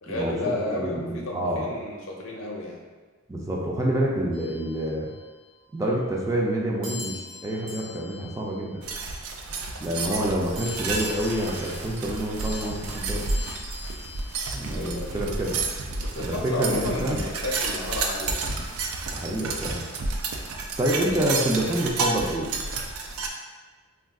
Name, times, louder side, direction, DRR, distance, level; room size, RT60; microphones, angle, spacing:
voice 1, 0.0-2.8 10.0-10.4 14.7-15.3 16.0-18.5, left 2 dB, 65° left, -1 dB, 0.6 m, -32 dB
voice 2, 0.7-1.7 3.3-5.1 5.7-8.8 9.8-13.3 14.5-15.6 16.2-17.2 19.1-19.9 20.8-22.5, right 1 dB, 15° right, -3 dB, 0.3 m, -27 dB
sound 1, 4.3-5.6 6.8-9.5 10.6-15.1, left 3 dB, 75° right, 0.9 m, -43 dB
sound 2, 8.8-23.3, right 3 dB, 90° right, 0.4 m, -31 dB
2.4 x 2.3 x 3.6 m, 1.3 s
head